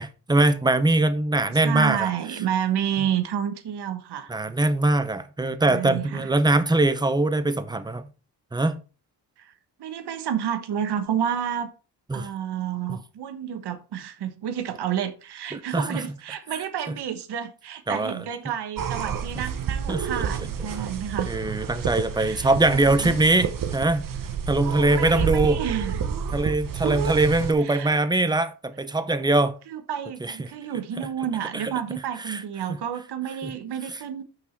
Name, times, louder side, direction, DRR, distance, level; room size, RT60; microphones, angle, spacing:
voice 1, 0.0-2.1 4.3-8.1 8.5-8.8 12.1-12.3 12.9-13.0 15.5-16.0 17.9-18.2 19.1-19.2 19.9-20.1 21.3-24.1 24.5-25.6 26.3-29.6 30.2-30.5 31.5-31.6 32.3-32.4 33.4-33.5, right 2 dB, 10° right, 0.6 m, -22 dB
voice 2, 1.5-4.3 5.7-6.3 9.4-9.5 9.8-11.7 12.1-21.4 22.2-23.2 24.6-26.0 27.6-27.9 29.7-34.2, right 9 dB, 70° right, 1.2 m, -30 dB
sound 1, 18.8-27.5, right 7 dB, 50° right, 1.0 m, -29 dB
6.1 x 6.0 x 4.5 m
wide cardioid pair, 145°, 41 cm